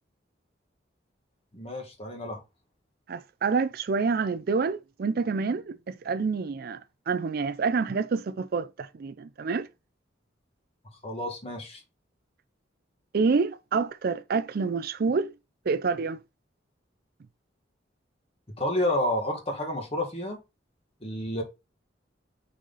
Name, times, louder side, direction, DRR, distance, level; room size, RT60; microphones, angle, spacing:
voice 1, 1.5-2.4 11.0-11.8 18.5-20.4 21.0-21.4, left 1 dB, 30° left, 1.8 m, -30 dB
voice 2, 3.1-6.8 7.1-9.7 13.1-15.3 15.7-16.2, right 4 dB, 55° right, 0.4 m, -27 dB
6.1 x 4.1 x 3.9 m
head